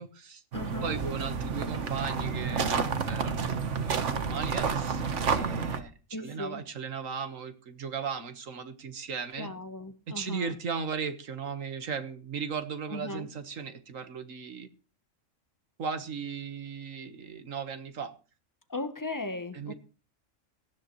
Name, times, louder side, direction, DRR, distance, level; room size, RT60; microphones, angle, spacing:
voice 1, 0.0-0.4 0.8-3.5 3.8-5.9 6.2-9.5 10.2-14.7 15.8-18.1 19.5-19.7, right 6 dB, 80° right, 1.8 m, -37 dB
voice 2, 0.5-1.0 6.1-6.6 9.4-10.6 12.9-13.3 18.7-19.7, left 2 dB, 15° left, 0.9 m, -37 dB
sound 1, 0.5-5.8, right 5 dB, 65° right, 1.5 m, -30 dB
18.0 x 13.0 x 3.1 m
omnidirectional pair, 1.3 m